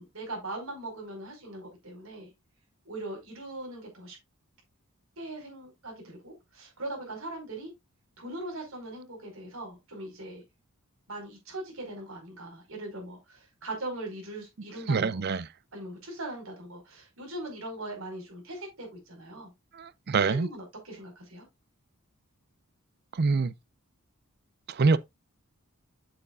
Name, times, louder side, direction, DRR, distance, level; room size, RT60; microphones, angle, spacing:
voice 1, 0.0-2.3 2.8-4.2 5.2-7.7 8.2-10.4 11.1-15.2 15.7-19.5 20.2-21.4, right 1 dB, 60° right, 4.9 m, -40 dB
voice 2, 14.9-15.5 19.7-20.5 23.1-23.5 24.7-25.0, right 4 dB, 45° right, 0.5 m, -25 dB
8.0 x 7.8 x 2.4 m
head